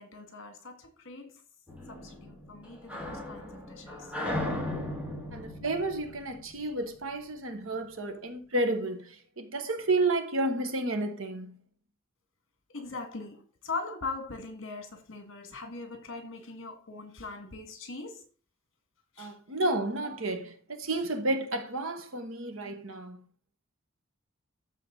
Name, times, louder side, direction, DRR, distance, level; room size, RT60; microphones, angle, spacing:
voice 1, 0.0-1.4 1.9-4.1 12.7-18.2 19.2-19.3, left 3 dB, 60° left, 2.1 m, -41 dB
sound 1, 1.7-7.1, left 1 dB, 5° right, 2.2 m, -37 dB
voice 2, 5.3-11.6 19.2-23.2, right 2 dB, 65° right, 1.3 m, -31 dB
13.0 x 4.4 x 4.0 m
head